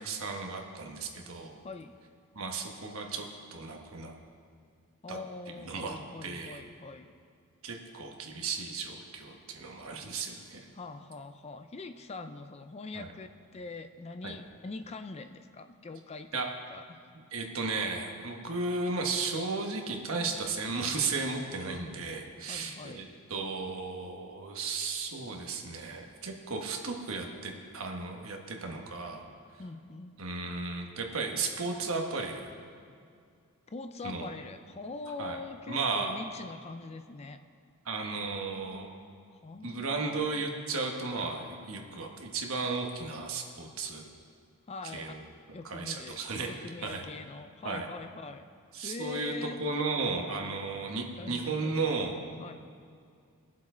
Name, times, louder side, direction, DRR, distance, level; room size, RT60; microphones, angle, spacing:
voice 1, 0.0-1.6 2.3-4.1 5.1-5.2 5.6-6.6 7.6-10.6 12.9-13.1 14.2-14.3 16.3-16.5 17.3-23.0 23.3-29.2 30.2-32.5 34.0-34.3 35.2-35.4 35.7-36.2 37.8-38.9 39.6-44.1 44.9-45.2 45.6-46.5 46.8-47.0 47.6-47.9 48.7-52.2, right 4 dB, 65° right, 2 dB, 1.4 m, -34 dB
voice 2, 1.6-2.0 5.0-7.1 10.7-17.0 22.5-23.1 29.6-30.2 33.7-37.4 39.3-40.5 44.7-45.1 45.5-46.2 46.5-48.4 48.8-49.6 51.2-52.5, left 3 dB, 30° left, 9 dB, 0.4 m, -43 dB
20.5 x 7.4 x 3.8 m, 2.3 s
head